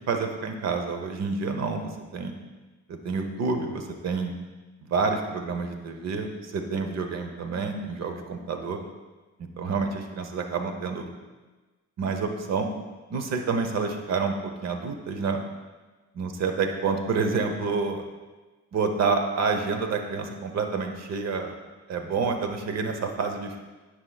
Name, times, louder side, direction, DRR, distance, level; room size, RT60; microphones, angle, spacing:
voice 1, 0.1-2.3 2.9-4.3 4.9-8.8 9.6-11.1 12.0-12.7 13.1-15.4 16.1-18.0 18.7-21.5 21.9-23.6, right 4 dB, 60° right, 5 dB, 1.0 m, -28 dB
9.6 x 6.4 x 2.4 m, 1.2 s
cardioid pair, 90°, 30 cm